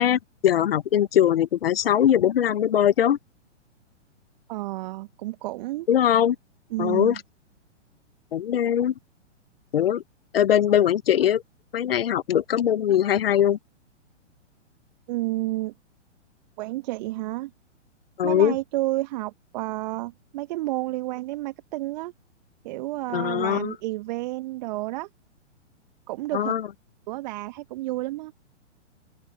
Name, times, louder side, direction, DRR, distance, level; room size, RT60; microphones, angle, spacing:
voice 1, 0.0-3.2 5.9-6.4 6.8-7.2 8.3-8.9 9.7-10.0 10.3-11.4 11.7-13.6 18.2-18.5 23.1-23.7 26.3-26.6, left 10 dB, 50° left, 1.2 m, -21 dB
voice 2, 4.5-5.9 6.7-7.2 15.1-15.7 16.6-17.5 18.2-22.1 22.6-25.1 26.1-26.5 27.1-28.3, right 18 dB, 35° right, 2.1 m, -30 dB
open air
figure-of-eight pair, 115°, 37 cm